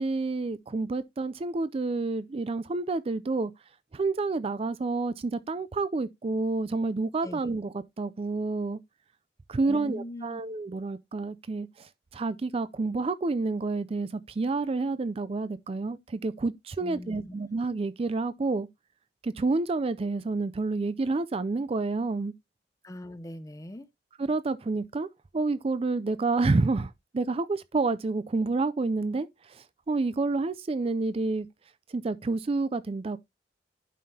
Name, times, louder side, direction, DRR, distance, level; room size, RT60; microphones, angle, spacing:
voice 1, 0.0-3.5 3.9-8.8 9.5-18.7 19.2-22.3 24.2-25.1 25.3-31.5 31.9-33.2, right 3 dB, 35° right, 0.4 m, -29 dB
voice 2, 9.6-10.4 16.8-17.4 22.8-23.9, left 1 dB, 20° left, 0.7 m, -41 dB
11.0 x 5.6 x 2.7 m
head